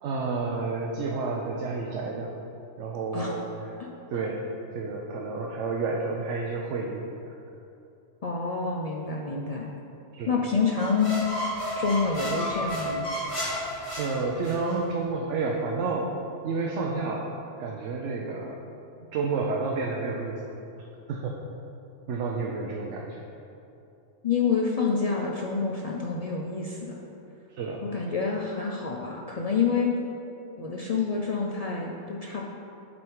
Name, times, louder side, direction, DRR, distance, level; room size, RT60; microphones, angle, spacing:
voice 1, 0.0-2.3 2.8-3.5 4.1-4.5 4.7-7.0 10.1-10.4 13.9-16.1 16.4-17.3 17.6-18.6 19.1-20.4 21.1-21.4 22.1-23.2 27.5-27.8, right 4 dB, 75° right, -1 dB, 0.9 m, -30 dB
voice 2, 8.2-9.7 10.3-11.2 11.8-13.1 24.2-26.9 27.8-29.9 30.6-32.4, left 5 dB, 60° left, -2 dB, 0.4 m, -27 dB
sound 1, 10.7-14.8, equal, 35° left, 1.8 m, -32 dB
8.8 x 3.5 x 4.6 m, 2.8 s
omnidirectional pair, 1.3 m